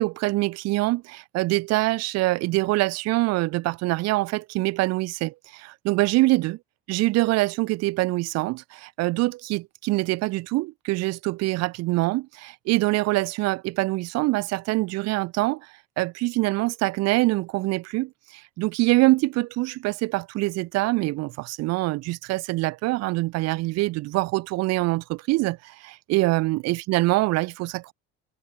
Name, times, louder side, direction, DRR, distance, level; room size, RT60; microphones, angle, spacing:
voice 1, 0.0-6.6 6.9-15.7 16.0-27.9, right 20 dB, 60° right, 0.7 m, -24 dB
cardioid pair, 130°, 30 cm